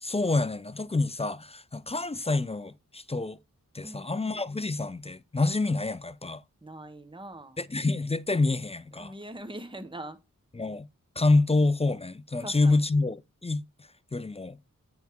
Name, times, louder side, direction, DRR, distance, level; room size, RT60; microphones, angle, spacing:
voice 1, 0.0-3.4 3.7-6.4 7.6-9.1 10.5-10.9 11.2-13.6 14.1-14.6, left 2 dB, 20° left, 0.4 m, -27 dB
voice 2, 3.8-4.7 6.6-7.6 8.9-10.2 12.4-12.8, right 1 dB, 15° right, 1.1 m, -43 dB
9.1 x 3.5 x 4.6 m
wide cardioid pair, 50°, 34 cm